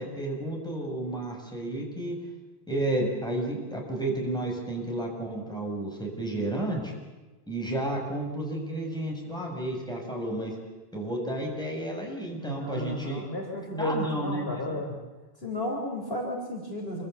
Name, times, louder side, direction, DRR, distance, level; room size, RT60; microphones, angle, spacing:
voice 1, 0.0-2.2 2.7-6.9 7.5-10.6 10.9-13.2 13.8-14.8, right 1 dB, 5° left, -1 dB, 7.0 m, -32 dB
voice 2, 12.4-15.0 15.4-17.1, left 1 dB, 70° left, 0 dB, 4.3 m, -33 dB
27.0 x 24.0 x 8.3 m, 1.2 s
omnidirectional pair, 1.1 m